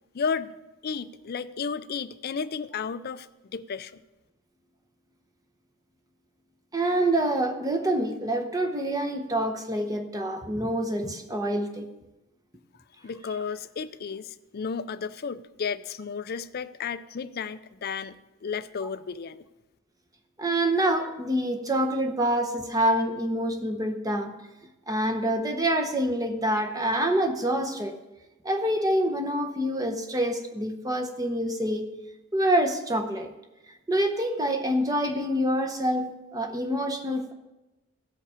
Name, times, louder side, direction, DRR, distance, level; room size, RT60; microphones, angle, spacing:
voice 1, 0.1-0.5 0.8-4.0 13.0-18.1 18.4-19.4, left 6 dB, 45° left, 13 dB, 0.4 m, -33 dB
voice 2, 6.7-11.9 20.4-24.3 24.9-27.9 28.4-31.9 32.3-33.3 33.9-37.3, right 1 dB, 15° right, 5 dB, 0.9 m, -26 dB
16.0 x 5.6 x 5.0 m, 1.0 s
head